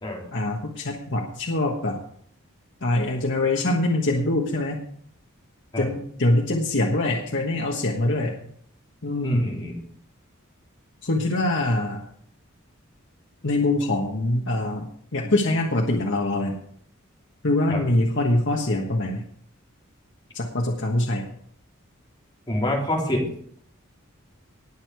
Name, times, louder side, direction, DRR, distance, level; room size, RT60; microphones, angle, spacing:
voice 1, 0.3-2.0 2.8-4.8 5.8-8.4 9.0-9.5 11.0-12.0 13.4-16.5 17.4-19.2 20.3-21.2, left 2 dB, 60° left, 0 dB, 1.4 m, -24 dB
voice 2, 9.2-9.8 17.7-17.8 22.5-23.3, left 1 dB, 20° left, -3 dB, 3.5 m, -26 dB
19.5 x 6.5 x 4.8 m, 0.62 s
head